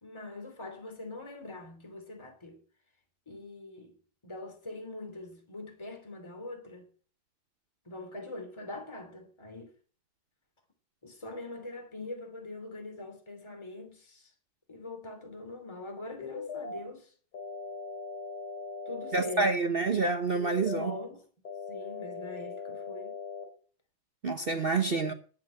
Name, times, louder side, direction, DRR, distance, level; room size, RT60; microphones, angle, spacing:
voice 1, 0.0-2.6 3.3-4.0 4.2-6.9 7.8-9.7 11.0-14.3 14.7-17.1 18.8-20.0 20.5-21.2 21.7-23.1 24.8-25.0, left 2 dB, 15° left, 2.8 m, -43 dB
sound 1, 16.2-16.8 17.3-19.3 20.3-21.0 21.4-23.4, left 4 dB, 55° left, 3.8 m, -40 dB
voice 2, 19.1-20.9 24.2-25.1, right 3 dB, 45° right, 0.8 m, -28 dB
10.5 x 7.8 x 8.8 m
omnidirectional pair, 2.1 m